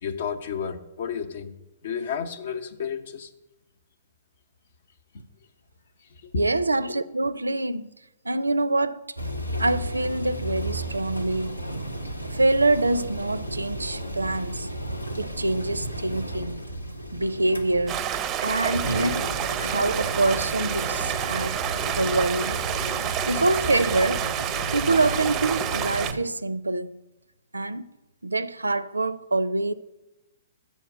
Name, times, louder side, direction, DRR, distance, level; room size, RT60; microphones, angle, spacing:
voice 1, 0.0-1.5 1.8-3.3 5.1-5.3 6.2-6.4, left 6 dB, 55° left, 0.8 m, -31 dB
voice 2, 6.3-7.9 8.2-9.0 9.6-11.6 12.3-14.7 15.2-16.6 17.1-18.0 18.4-19.3 19.6-21.6 21.9-22.6 23.3-24.3 24.7-27.0 27.5-27.9 28.2-29.7, right 2 dB, 80° right, 0.4 m, -25 dB
sound 1, 9.2-26.2, right 1 dB, 85° left, 0.9 m, -33 dB
Stream, 17.9-26.1, right 10 dB, 25° right, 0.5 m, -29 dB
7.2 x 7.1 x 8.2 m
figure-of-eight pair, 115°, 0 cm